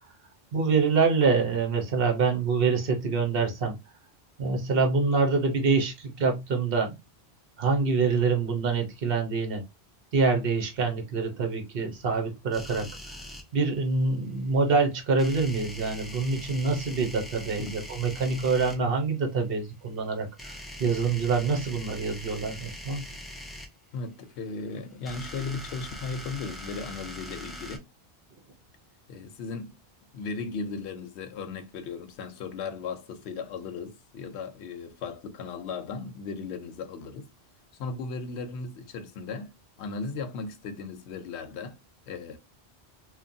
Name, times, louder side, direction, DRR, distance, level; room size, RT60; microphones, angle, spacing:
voice 1, 0.5-3.8 4.4-6.9 7.6-9.6 10.1-12.9 13.5-23.0, right 4 dB, 65° right, 1.0 m, -26 dB
sound 1, 12.5-13.4 15.2-18.8 20.4-23.7 24.8-27.8, left 1 dB, ahead, 0.3 m, -42 dB
voice 2, 23.9-27.8 29.1-29.8 30.1-37.3 37.8-39.5 39.8-41.8 42.1-42.4, left 4 dB, 90° left, 0.9 m, -36 dB
3.1 x 2.1 x 2.5 m
omnidirectional pair, 1.1 m